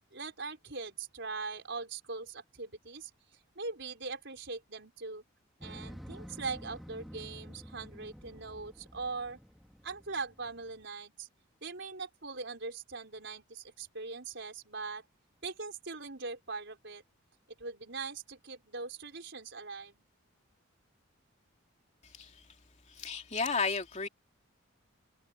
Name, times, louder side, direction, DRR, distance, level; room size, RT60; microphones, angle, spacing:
voice 1, 0.1-3.1 3.6-5.2 5.6-9.4 9.8-11.3 11.6-15.0 15.4-17.0 17.5-20.0, right 4 dB, 60° right, 5.4 m, -41 dB
Motorcycle, 5.6-10.8, equal, ahead, 2.4 m, -49 dB
voice 2, 22.9-24.1, left 4 dB, 35° left, 2.8 m, -32 dB
head